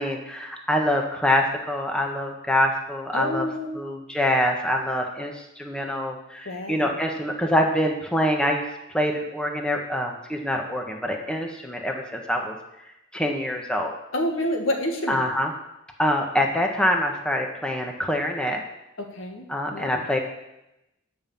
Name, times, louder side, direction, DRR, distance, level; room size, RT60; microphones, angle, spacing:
voice 1, 0.0-3.5 3.7-12.5 13.1-14.0 15.1-15.5 16.0-18.6 19.5-20.2, left 1 dB, 5° left, 1 dB, 1.2 m, -25 dB
voice 2, 3.1-3.7 6.5-6.9 14.1-15.2 19.0-19.5 19.7-20.0, left 1 dB, 85° left, 2 dB, 1.8 m, -28 dB
9.9 x 5.6 x 7.0 m, 0.89 s
head